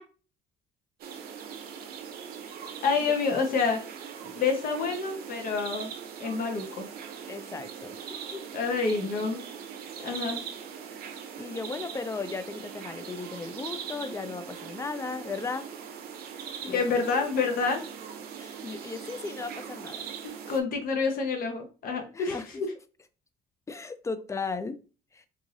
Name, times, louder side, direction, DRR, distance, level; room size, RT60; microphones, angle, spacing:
sound 1, 1.0-20.6, right 7 dB, 65° right, 0.7 m, -41 dB
voice 1, 2.8-3.8 4.3-5.9 6.2-6.9 8.5-9.4 10.0-10.4 16.7-17.8 20.2-22.4, left 4 dB, 60° left, 3 dB, 1.1 m, -28 dB
voice 2, 7.3-8.0 8.3-8.4 10.0-10.2 11.4-15.7 16.7-17.3 18.4-20.0 22.1-22.6 23.7-24.8 25.1-25.3, left 4 dB, 15° left, 11 dB, 0.4 m, -36 dB
3.6 x 3.1 x 2.6 m, 0.34 s
cardioid pair, 110°, 17 cm